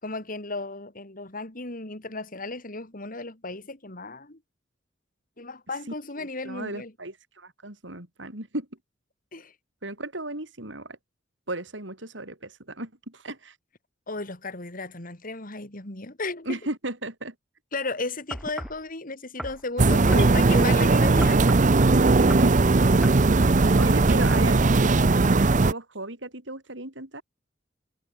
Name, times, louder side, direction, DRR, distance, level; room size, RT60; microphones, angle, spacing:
voice 1, 0.0-4.4 5.4-6.9 9.3-9.5 14.1-16.6 17.7-21.4, left 3 dB, 50° left, 3.9 m, -34 dB
voice 2, 6.2-8.7 9.8-11.0 11.5-13.6 16.4-17.3 22.4-22.6 23.8-27.2, right 2 dB, 75° right, 6.1 m, -35 dB
sound 1, 18.3-18.8 19.4-20.7 21.2-21.7 22.2-22.5 23.0-23.2 23.9-24.0, equal, ahead, 3.5 m, -36 dB
sound 2, 19.8-25.7, right 3 dB, 40° right, 0.7 m, -19 dB
head